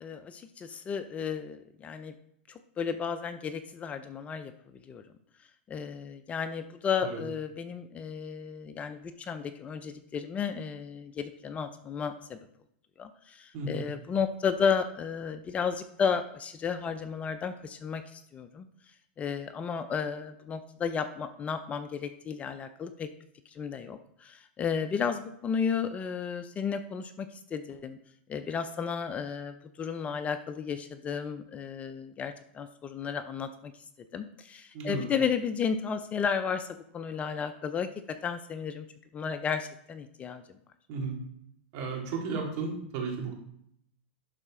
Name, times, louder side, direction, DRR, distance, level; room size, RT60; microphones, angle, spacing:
voice 1, 0.0-2.1 2.5-4.5 4.8-5.0 5.7-12.4 13.0-18.7 19.2-23.1 23.5-28.0 28.3-33.7 34.1-38.9 39.1-40.4, left 6 dB, 20° left, 9 dB, 0.5 m, -33 dB
voice 2, 13.5-13.8 34.7-35.1 40.9-41.2 41.7-43.3, right 4 dB, 50° right, 0 dB, 2.4 m, -34 dB
11.5 x 4.1 x 3.7 m, 0.73 s
hypercardioid pair, 125°, 6 cm